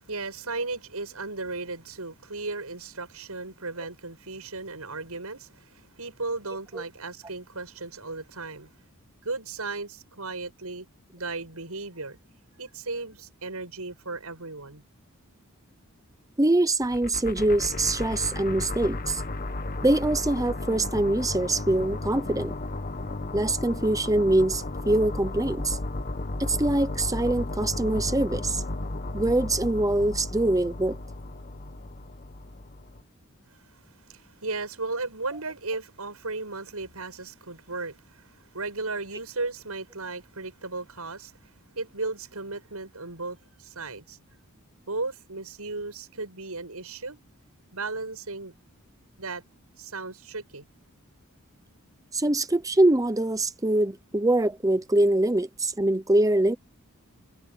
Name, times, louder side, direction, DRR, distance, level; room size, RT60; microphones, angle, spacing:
voice 1, 0.1-8.7 9.2-10.9 11.1-12.2 12.6-14.8 33.7-41.4 41.8-44.2 44.9-47.2 47.7-48.5 49.2-49.4 49.8-50.6, right 3 dB, 85° right, 7.2 m, -35 dB
voice 2, 16.4-19.2 19.8-22.5 23.3-25.8 26.4-28.6 29.1-31.0 52.1-56.6, right 1 dB, 15° right, 0.9 m, -24 dB
sound 1, 16.8-33.0, left 2 dB, 40° left, 1.4 m, -34 dB
head